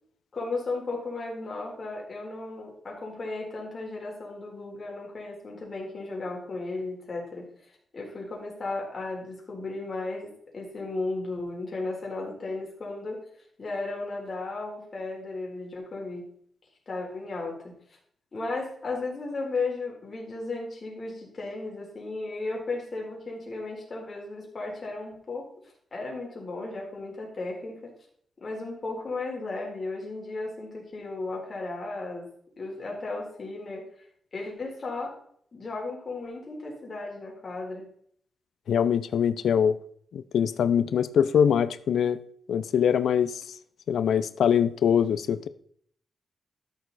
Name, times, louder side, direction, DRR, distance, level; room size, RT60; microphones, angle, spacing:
voice 1, 0.3-7.5 7.9-13.2 13.6-16.2 16.9-17.7 18.3-25.5 25.9-27.9 28.4-32.3 32.6-33.9 34.3-35.1 35.5-37.9, left 3 dB, 40° left, 3.8 m, -35 dB
voice 2, 38.7-39.8 40.1-42.2 42.5-43.6 43.9-45.5, left 8 dB, 85° left, 0.5 m, -23 dB
13.0 x 6.9 x 4.1 m
wide cardioid pair, 115°, 0 cm